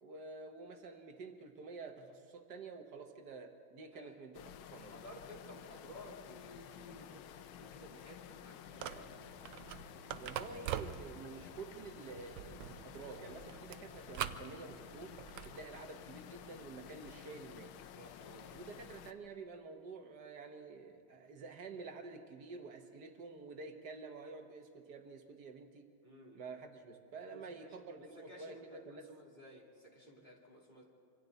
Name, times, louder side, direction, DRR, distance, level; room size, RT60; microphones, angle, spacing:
voice 1, 0.0-5.0 10.2-15.2 15.4-17.8 18.5-25.9 26.3-29.1, right 4 dB, 60° right, 5 dB, 1.6 m, -49 dB
sound 1, 4.3-19.1, left 10 dB, 90° left, 1.6 m, -53 dB
voice 2, 4.8-9.1 18.0-18.6 26.0-26.4 27.3-27.8 28.1-30.8, equal, 20° left, -3 dB, 2.9 m, -55 dB
sound 2, 8.7-15.6, right 10 dB, 75° right, 1.3 m, -45 dB
26.0 x 25.0 x 4.0 m, 2.3 s
omnidirectional pair, 2.2 m